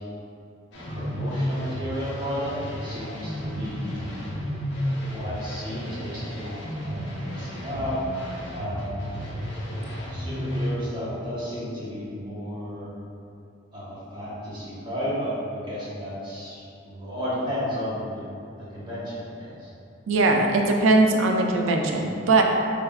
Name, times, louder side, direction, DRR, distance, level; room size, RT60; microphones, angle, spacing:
sound 1, 0.7-10.7, equal, 65° left, 0.6 m, -32 dB
voice 1, 0.9-4.1 5.1-9.1 9.7-12.9 13.7-18.2 18.6-19.7, equal, 25° right, -10 dB, 1.0 m, -33 dB
voice 2, 20.1-22.4, right 2 dB, 85° right, 2 dB, 0.4 m, -20 dB
3.9 x 3.3 x 2.4 m, 2.6 s
head